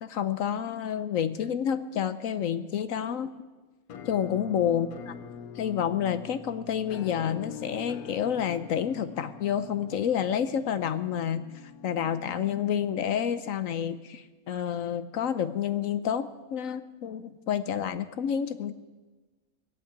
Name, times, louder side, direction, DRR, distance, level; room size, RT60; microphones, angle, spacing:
voice 1, 0.0-3.3 4.1-5.1 5.6-18.7, left 8 dB, 70° left, 12 dB, 1.0 m, -29 dB
Musical instrument, 3.9-13.7, left 7 dB, 85° left, 1.3 m, -44 dB
19.0 x 8.7 x 8.7 m, 1.3 s
omnidirectional pair, 1.5 m